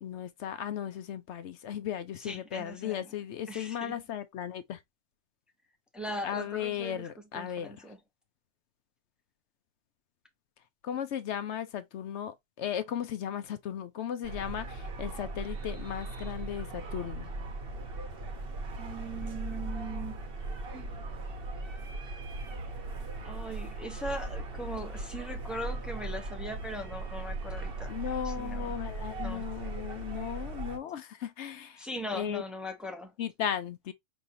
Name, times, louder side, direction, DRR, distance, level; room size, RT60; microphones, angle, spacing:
voice 1, 0.0-4.8 6.2-7.8 10.8-17.3 27.9-31.9 32.1-32.4 33.2-33.9, left 9 dB, 75° left, 0.9 m, -36 dB
voice 2, 2.2-3.0 3.5-4.0 5.9-7.1 7.3-8.0 18.8-20.2 20.7-20.9 23.2-27.9 28.2-28.7 29.2-29.4 31.8-33.1, equal, ahead, 0.9 m, -40 dB
sound 1, 14.2-30.8, right 2 dB, 55° right, 1.2 m, -38 dB
5.3 x 3.1 x 2.7 m
omnidirectional pair, 1.2 m